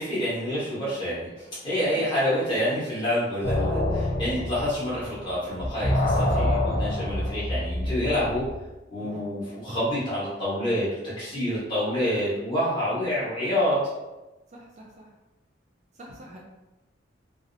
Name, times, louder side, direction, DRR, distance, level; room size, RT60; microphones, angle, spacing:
voice 1, 0.0-8.4 8.9-13.8, left 1 dB, 25° left, -10 dB, 1.2 m, -27 dB
sound 1, 3.4-5.3 5.6-8.6, left 1 dB, 60° left, 0.7 m, -26 dB
voice 2, 14.5-15.1 15.9-16.4, equal, 35° right, -2 dB, 0.3 m, -45 dB
2.7 x 2.0 x 2.5 m, 1.0 s
head